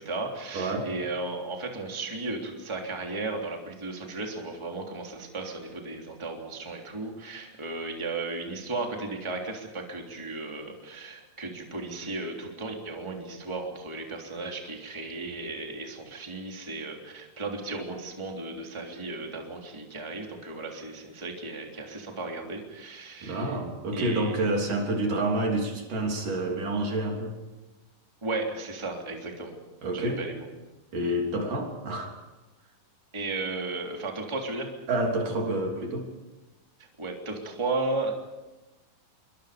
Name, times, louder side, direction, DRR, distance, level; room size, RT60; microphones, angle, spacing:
voice 1, 0.0-23.5 23.9-24.6 28.2-29.5 29.9-30.4 33.1-34.7 37.0-38.2, right 3 dB, 10° right, 1 dB, 2.9 m, -35 dB
voice 2, 0.5-0.9 23.2-27.4 29.8-30.2 30.9-32.2 34.9-36.1, right 1 dB, 60° right, 1 dB, 4.9 m, -28 dB
26.5 x 24.5 x 5.2 m, 1.1 s
omnidirectional pair, 4.2 m